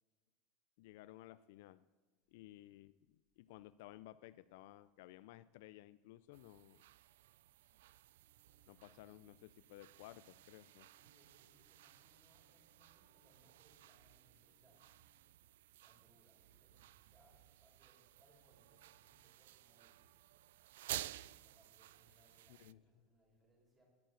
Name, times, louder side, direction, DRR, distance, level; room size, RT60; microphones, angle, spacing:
voice 1, 0.8-1.8 2.3-6.8 8.7-10.9 22.5-22.8, left 15 dB, 65° left, 15 dB, 0.3 m, -57 dB
sound 1, 6.3-22.7, right 14 dB, 90° right, 0.3 m, -54 dB
sound 2, 8.2-15.3, left 3 dB, 70° right, 4.2 m, -80 dB
voice 2, 11.0-14.9 15.8-20.1 20.8-23.9, right 1 dB, 15° right, -1 dB, 3.9 m, -72 dB
10.5 x 8.8 x 7.6 m, 1.3 s
supercardioid pair, 155°, 0 cm